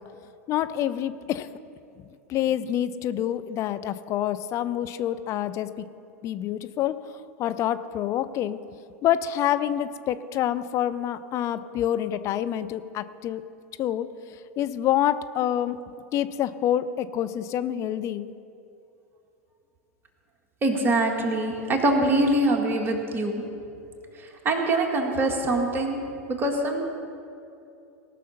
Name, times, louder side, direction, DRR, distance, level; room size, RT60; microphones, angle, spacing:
voice 1, 0.5-1.5 2.3-5.9 6.2-7.1 7.4-8.6 9.0-13.4 13.8-14.1 14.6-15.8 16.1-18.3, left 11 dB, 40° left, 12 dB, 0.5 m, -27 dB
voice 2, 20.6-23.4 24.1-26.0 26.4-26.8, right 2 dB, 25° right, 1 dB, 1.9 m, -24 dB
18.5 x 6.2 x 5.7 m, 2.7 s
hypercardioid pair, 90°, 8 cm